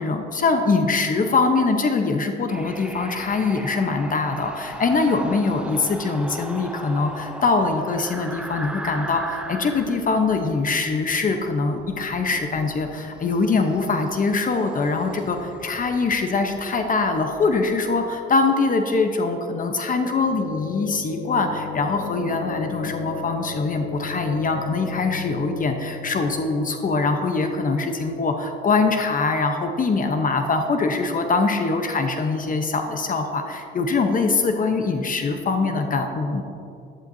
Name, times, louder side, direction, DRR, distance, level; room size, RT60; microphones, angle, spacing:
voice 1, 0.0-36.4, left 4 dB, 45° left, 5 dB, 0.9 m, -23 dB
sound 1, 2.5-18.3, right 1 dB, 5° right, 0.6 m, -39 dB
sound 2, 18.8-30.9, left 6 dB, 80° left, 1.0 m, -36 dB
11.5 x 11.5 x 2.7 m, 2.6 s
cardioid pair, 90°, 20 cm